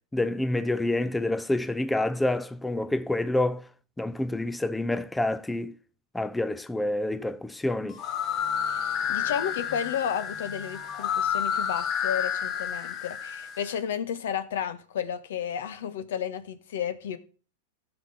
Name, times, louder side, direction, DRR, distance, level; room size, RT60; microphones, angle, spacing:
voice 1, 0.1-3.6 4.0-5.8 6.1-8.0, left 1 dB, 5° left, 0.4 m, -28 dB
sound 1, 7.9-13.7, left 8 dB, 30° left, 1.2 m, -30 dB
voice 2, 8.7-17.2, left 8 dB, 75° left, 1.4 m, -32 dB
15.0 x 6.0 x 4.3 m
supercardioid pair, 145°, 0 cm